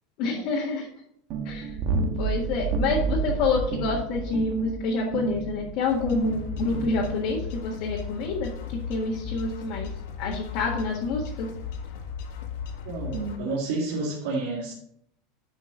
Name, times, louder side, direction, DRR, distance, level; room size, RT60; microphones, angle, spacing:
voice 1, 0.2-0.9 1.4-1.8 2.2-8.5 8.9-9.9 10.2-11.5, left 3 dB, 50° left, -3 dB, 1.6 m, -27 dB
sound 1, 1.3-7.5, right 5 dB, 35° right, 1.1 m, -30 dB
sound 2, 5.9-13.4, left 6 dB, 75° left, 1.5 m, -36 dB
voice 2, 12.8-14.7, right 3 dB, 70° right, -4 dB, 2.1 m, -29 dB
11.0 x 5.3 x 3.8 m, 0.69 s
supercardioid pair, 170°, 0 cm